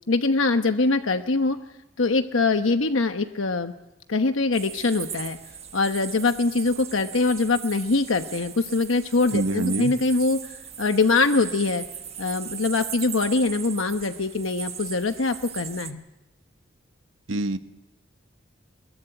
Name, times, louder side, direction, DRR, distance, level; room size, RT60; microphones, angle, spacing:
voice 1, 0.1-1.6 2.0-3.7 4.1-5.4 5.7-10.5 10.8-11.8 12.2-16.0, left 3 dB, 80° left, 7 dB, 1.1 m, -23 dB
sound 1, 4.5-15.9, right 8 dB, 30° right, 1.3 m, -38 dB
voice 2, 9.3-9.9 17.3-17.6, right 2 dB, 80° right, 9 dB, 1.1 m, -25 dB
22.5 x 22.0 x 9.2 m, 0.99 s
head